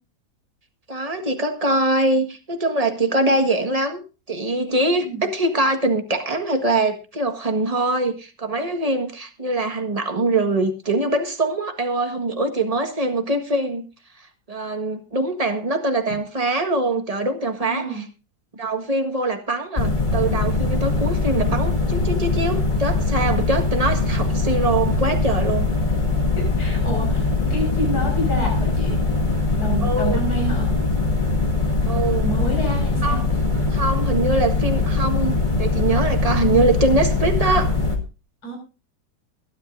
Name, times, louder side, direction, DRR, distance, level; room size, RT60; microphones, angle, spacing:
voice 1, 0.9-13.9 14.5-18.0 18.5-25.7 29.8-30.2 31.9-32.3 33.0-33.3 33.7-37.7, right 2 dB, 20° right, 5 dB, 1.6 m, -23 dB
voice 2, 4.8-5.2 17.6-18.0 26.4-29.0 29.6-30.7 32.2-33.2 38.4-38.6, right 1 dB, 55° left, 0 dB, 6.4 m, -28 dB
sound 1, 19.8-38.0, left 3 dB, 25° left, 2.0 m, -21 dB
21.5 x 11.5 x 2.6 m, 0.31 s
omnidirectional pair, 2.0 m